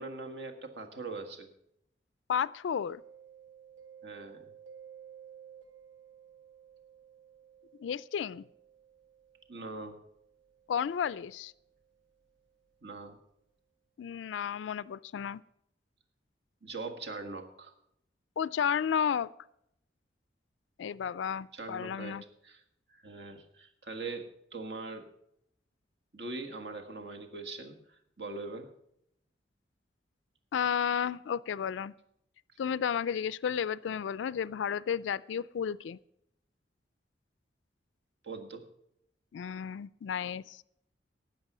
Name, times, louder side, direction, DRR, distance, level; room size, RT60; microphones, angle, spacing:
voice 1, 0.0-1.5 4.0-4.5 9.5-10.0 12.8-13.2 16.6-17.7 21.5-22.2 22.4-22.6 22.9-25.1 26.1-28.7 38.2-38.6, right 3 dB, 65° right, 4 dB, 1.6 m, -42 dB
voice 2, 2.3-3.0 7.8-8.4 10.7-11.5 14.0-15.4 18.4-19.3 20.8-22.2 30.5-31.9 32.6-36.0 39.3-40.6, left 7 dB, 85° left, 18 dB, 0.3 m, -32 dB
Mallet percussion, 2.9-12.5, right 8 dB, 80° right, 1.2 m, -55 dB
13.0 x 8.7 x 6.0 m, 0.77 s
head